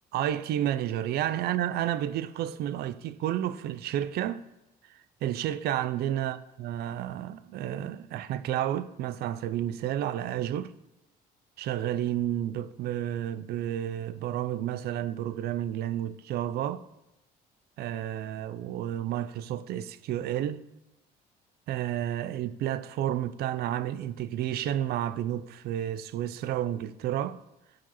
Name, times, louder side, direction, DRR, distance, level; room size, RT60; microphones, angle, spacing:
voice 1, 0.1-4.4 5.2-10.7 11.6-16.8 17.8-20.6 21.7-27.4, right 11 dB, 70° right, 0.5 m, -31 dB
13.5 x 4.9 x 3.0 m
cardioid pair, 110°, 17 cm